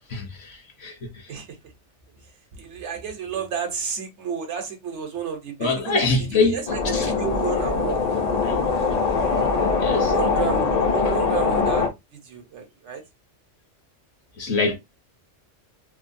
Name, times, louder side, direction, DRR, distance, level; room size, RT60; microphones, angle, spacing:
voice 1, 0.0-1.4 5.6-7.1 8.4-8.6 9.8-10.2 11.0-11.2 14.4-14.7, left 3 dB, 65° left, 1.1 m, -25 dB
voice 2, 2.5-8.0 8.3-8.4 9.2-9.5 10.0-11.9 12.1-13.0, right 7 dB, 70° right, 1.1 m, -31 dB
sound 1, 6.7-11.9, left 4 dB, 45° left, 0.5 m, -22 dB
3.1 x 2.2 x 2.6 m
omnidirectional pair, 1.2 m